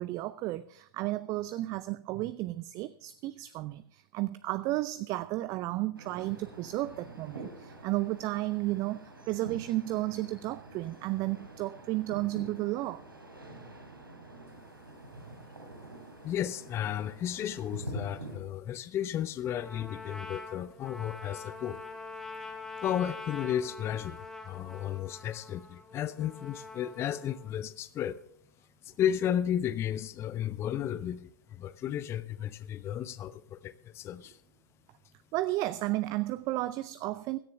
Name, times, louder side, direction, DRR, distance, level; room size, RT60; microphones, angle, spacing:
voice 1, 0.0-13.0 35.3-37.4, right 17 dB, 30° right, 16 dB, 0.5 m, -33 dB
sound 1, 6.0-18.4, right 2 dB, 90° right, 3.5 m, -46 dB
voice 2, 16.2-21.8 22.8-24.2 24.5-28.2 28.8-34.4, left 10 dB, 25° left, 15 dB, 0.5 m, -33 dB
Trumpet, 19.4-27.5, left 3 dB, 5° left, 2.2 m, -45 dB
16.5 x 13.5 x 3.4 m, 0.66 s
figure-of-eight pair, 105°, 11 cm